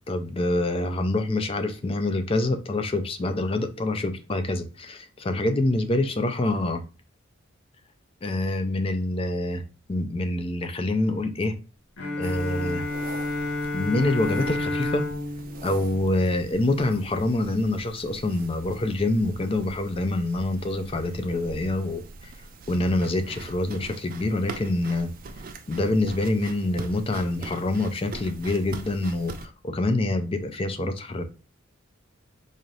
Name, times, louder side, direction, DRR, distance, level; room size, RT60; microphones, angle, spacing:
voice 1, 0.1-6.8 8.2-9.6 9.9-11.5 12.2-12.8 13.7-15.1 15.6-22.3 22.7-25.1 25.7-31.2, left 2 dB, 25° left, 0.4 m, -26 dB
Bowed string instrument, 12.0-16.9, left 2 dB, 90° left, 0.7 m, -31 dB
sound 1, 12.2-29.5, right 3 dB, 40° right, 0.4 m, -42 dB
4.0 x 2.5 x 3.1 m
head